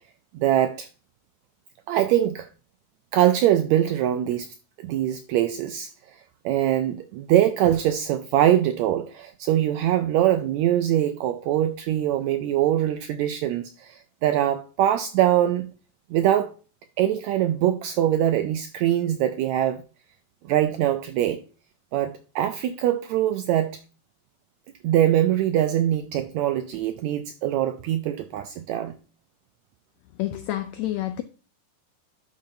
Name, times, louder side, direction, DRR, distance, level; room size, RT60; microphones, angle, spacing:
voice 1, 0.3-0.9 1.9-2.5 3.1-5.9 6.4-15.7 16.1-16.6 17.0-19.8 20.4-21.4 21.9-23.7 24.8-28.9, right 12 dB, 85° right, 1.6 m, -23 dB
voice 2, 30.2-31.2, left 14 dB, 85° left, 1.6 m, -28 dB
10.5 x 6.7 x 2.6 m
omnidirectional pair, 3.7 m